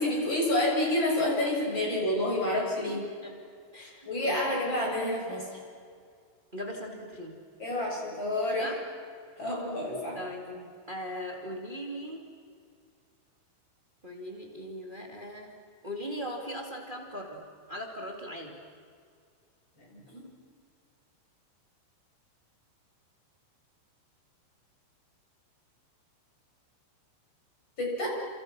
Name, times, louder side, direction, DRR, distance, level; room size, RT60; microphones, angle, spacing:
voice 1, 0.0-3.0 3.8-5.6 7.6-8.7 9.4-10.2 19.8-20.2 27.8-28.1, left 1 dB, 20° left, -2 dB, 7.8 m, -29 dB
voice 2, 2.8-3.4 3.7-4.4 6.5-7.4 8.6-8.8 10.1-12.2 14.0-15.5 15.8-17.4 17.7-18.6, equal, 70° right, 1 dB, 0.4 m, -39 dB
29.5 x 29.0 x 6.2 m, 2.2 s
omnidirectional pair, 5.8 m